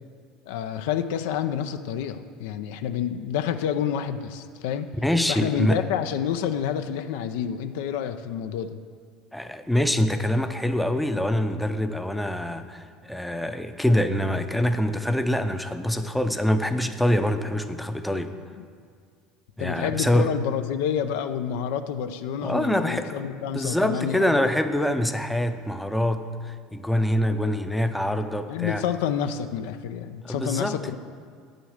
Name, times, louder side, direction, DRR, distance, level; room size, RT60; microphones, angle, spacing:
voice 1, 0.5-4.9 5.3-8.8 18.6-18.7 19.6-24.4 28.5-31.0, left 8 dB, 80° left, 9 dB, 0.5 m, -28 dB
voice 2, 5.0-5.8 9.3-18.3 19.6-20.3 22.4-23.2 23.5-28.8 30.2-30.8, left 1 dB, 5° left, 8 dB, 0.5 m, -25 dB
8.8 x 6.3 x 6.5 m, 2.1 s
supercardioid pair, 105°, 0 cm